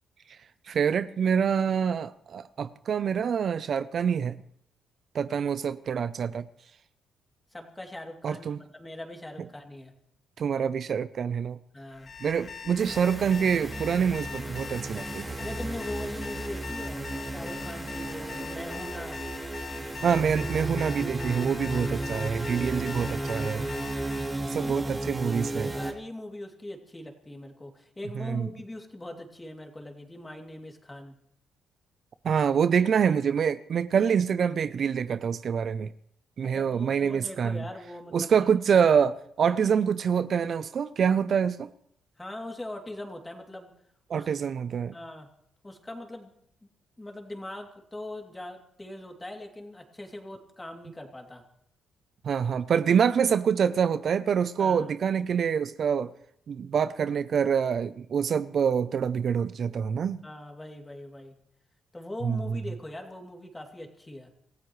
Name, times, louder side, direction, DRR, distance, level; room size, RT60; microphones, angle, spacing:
voice 1, 0.7-4.4 5.1-6.5 8.2-8.6 10.4-11.6 12.2-15.3 19.8-23.7 24.5-25.7 28.2-28.5 32.2-35.9 36.4-37.6 38.1-41.7 44.1-44.9 52.2-56.1 56.5-60.2 62.2-62.6, right 7 dB, 55° right, 0.5 m, -26 dB
voice 2, 7.5-9.9 11.7-12.1 15.4-19.2 24.4-24.8 25.7-31.1 36.4-38.5 42.2-43.7 44.1-44.3 44.9-45.3 45.6-46.3 47.0-51.4 54.6-54.8 60.2-61.3 61.9-64.3, left 1 dB, 15° left, 2.8 m, -41 dB
Alarm, 11.9-24.4, left 6 dB, 50° left, 2.4 m, -42 dB
sound 1, 12.8-25.9, right 2 dB, 15° right, 2.9 m, -34 dB
26.5 x 15.0 x 3.2 m
cardioid pair, 90°, 0 cm